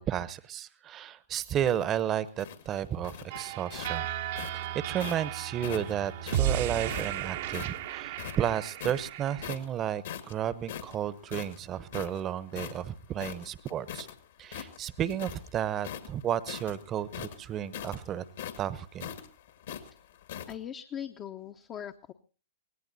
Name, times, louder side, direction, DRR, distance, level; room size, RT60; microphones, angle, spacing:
voice 1, 0.0-4.1 4.7-14.1 14.4-18.2 18.6-19.1, right 10 dB, 25° right, 18 dB, 0.9 m, -32 dB
sound 1, 1.5-5.3 5.6-7.8 8.1-9.1 9.4-9.8 10.0-14.1 14.4-15.5 15.8-20.5, left 9 dB, 60° left, 1.8 m, -41 dB
sound 2, 3.3-9.5, right 11 dB, 50° right, 0.9 m, -34 dB
voice 2, 20.5-22.1, left 9 dB, 30° left, 6 dB, 0.8 m, -40 dB
24.0 x 18.5 x 2.8 m, 0.37 s
figure-of-eight pair, 105°, 0 cm